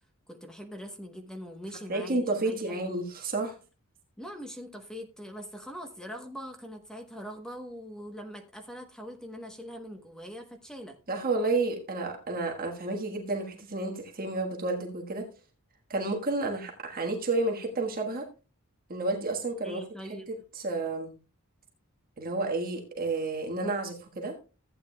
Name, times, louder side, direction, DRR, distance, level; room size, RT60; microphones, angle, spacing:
voice 1, 0.3-2.8 4.2-11.0 19.6-20.3, equal, 5° left, 4 dB, 1.0 m, -42 dB
voice 2, 1.9-3.5 11.1-15.3 15.9-18.3 18.9-19.8 20.3-21.1 22.2-24.3, right 2 dB, 40° right, 2 dB, 1.4 m, -31 dB
15.0 x 8.9 x 2.2 m, 0.33 s
head